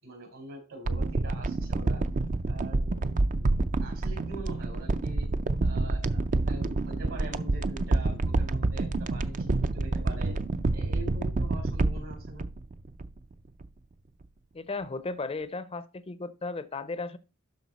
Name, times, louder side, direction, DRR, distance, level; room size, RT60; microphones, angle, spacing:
voice 1, 0.0-2.0 2.5-3.0 3.4-3.5 3.8-5.3 5.6-9.5 9.7-10.3 10.7-12.4, right 2 dB, 75° right, 4.7 m, -44 dB
sound 1, 0.8-13.3 13.6-13.7, right 2 dB, 35° right, 0.4 m, -28 dB
voice 2, 14.5-17.2, left 3 dB, 25° left, 0.5 m, -35 dB
12.0 x 4.6 x 4.1 m
head